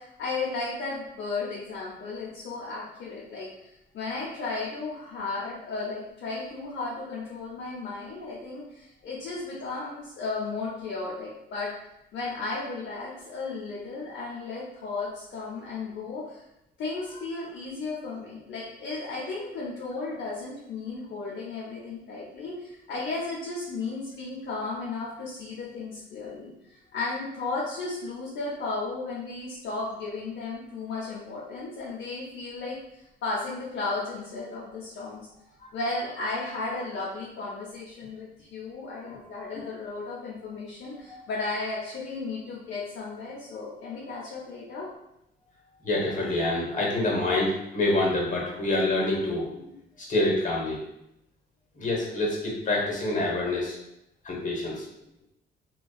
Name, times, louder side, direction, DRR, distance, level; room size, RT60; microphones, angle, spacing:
voice 1, 0.0-3.5 3.9-11.7 12.1-16.4 16.8-32.8 33.2-35.4 35.7-44.9, left 3 dB, 65° left, -6 dB, 0.6 m, -34 dB
voice 2, 45.8-49.6 50.0-50.8 51.8-53.8 54.2-54.9, left 2 dB, 40° left, -3 dB, 0.9 m, -27 dB
2.4 x 2.2 x 2.3 m, 0.84 s
cardioid pair, 90°, 20 cm